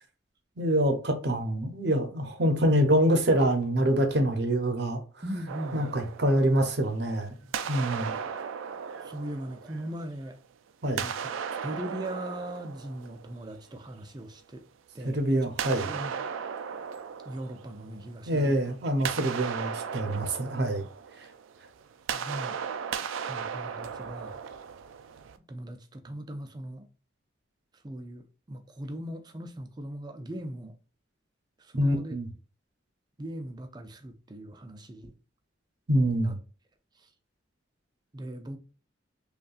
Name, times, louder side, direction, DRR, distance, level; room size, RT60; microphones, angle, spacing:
voice 1, 0.6-5.0 5.7-7.3 7.7-8.2 10.8-11.1 15.0-15.9 18.3-20.8 31.8-32.3 35.9-36.4, right 1 dB, 55° right, 0.7 m, -25 dB
voice 2, 5.2-5.9 7.4-7.5 9.0-10.4 11.0-11.2 11.6-14.6 14.9-15.5 15.8-16.1 17.3-18.6 22.1-22.6 23.2-24.4 25.5-26.9 27.8-30.7 31.6-32.2 33.2-35.1 36.1-36.4 37.0-37.1 38.1-38.6, right 1 dB, 20° right, 0.4 m, -39 dB
sound 1, 5.5-7.1 7.5-10.3 10.9-13.8 15.6-18.3 18.7-25.4, right 7 dB, 85° right, 0.4 m, -37 dB
5.3 x 2.3 x 2.4 m
head